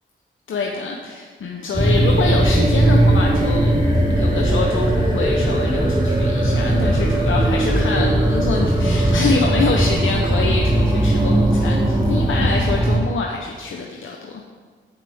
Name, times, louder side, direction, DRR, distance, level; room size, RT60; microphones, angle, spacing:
voice 1, 0.5-14.4, left 4 dB, 80° left, 1 dB, 0.8 m, -25 dB
sound 1, 1.7-13.0, right 1 dB, 25° right, 2.7 m, -18 dB
13.0 x 6.7 x 3.6 m, 1.6 s
cardioid pair, 55°, 20 cm